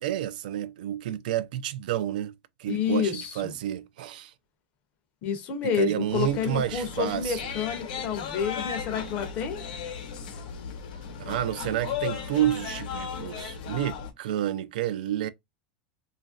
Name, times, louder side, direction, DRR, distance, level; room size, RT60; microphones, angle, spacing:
voice 1, 0.0-2.3 2.6-4.3 5.6-7.4 11.2-15.3, right 11 dB, 75° right, 0.4 m, -30 dB
voice 2, 2.7-3.5 5.2-9.6, left 7 dB, 30° left, 0.6 m, -29 dB
sound 1, 6.1-14.1, left 7 dB, 70° left, 0.9 m, -36 dB
2.9 x 2.4 x 2.4 m
supercardioid pair, 175°, 5 cm